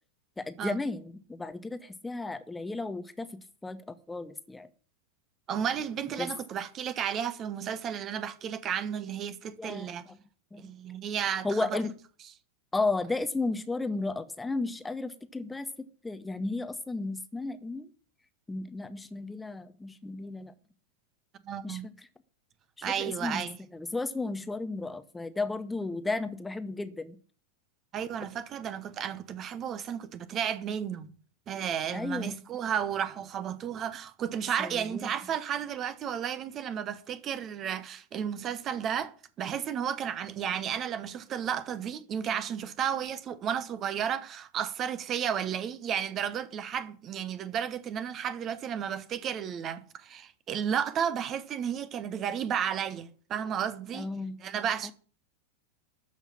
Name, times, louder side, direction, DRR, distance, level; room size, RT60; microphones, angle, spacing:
voice 1, 0.4-4.7 6.2-6.3 9.6-10.2 10.5-10.7 11.4-11.9 12.7-17.9 18.5-20.5 21.6-21.9 22.8-23.5 23.7-27.2 31.9-32.4 34.5-35.1 53.9-54.4 54.8-54.9, left 3 dB, 10° left, 0.8 m, -34 dB
voice 2, 5.5-10.1 10.6-11.8 21.4-21.9 22.8-23.6 27.9-31.1 31.5-54.1 54.4-54.9, right 8 dB, 30° right, 0.9 m, -33 dB
13.0 x 5.7 x 7.2 m
figure-of-eight pair, 90°, 0 cm